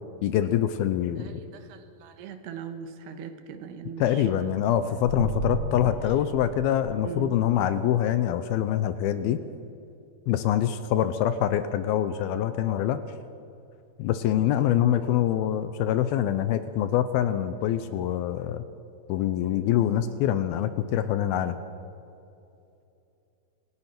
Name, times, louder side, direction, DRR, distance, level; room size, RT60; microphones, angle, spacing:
voice 1, 0.2-1.4 4.0-9.4 10.3-13.0 14.0-18.6 19.1-21.6, left 11 dB, 75° left, 11 dB, 2.4 m, -25 dB
voice 2, 1.2-4.6 5.7-6.4 7.0-7.4, right 7 dB, 80° right, 8 dB, 3.2 m, -41 dB
sound 1, 5.0-7.3, equal, 55° left, 4.9 m, -33 dB
26.5 x 17.0 x 5.9 m, 2.7 s
omnidirectional pair, 4.8 m